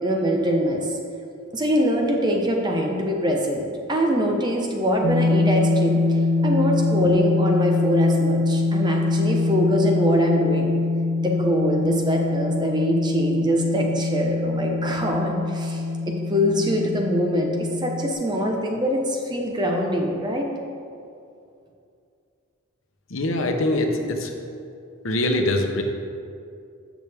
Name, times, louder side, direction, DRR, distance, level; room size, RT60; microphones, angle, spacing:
voice 1, 0.0-1.0 1.5-6.0 6.4-10.7 11.2-20.5, equal, 20° right, 1 dB, 0.9 m, -23 dB
sound 1, 5.0-18.1, left 3 dB, 65° right, 0.9 m, -23 dB
voice 2, 23.1-23.9 24.2-24.3 25.0-25.8, left 1 dB, 70° left, 3 dB, 1.0 m, -23 dB
13.5 x 6.1 x 3.5 m, 2.5 s
head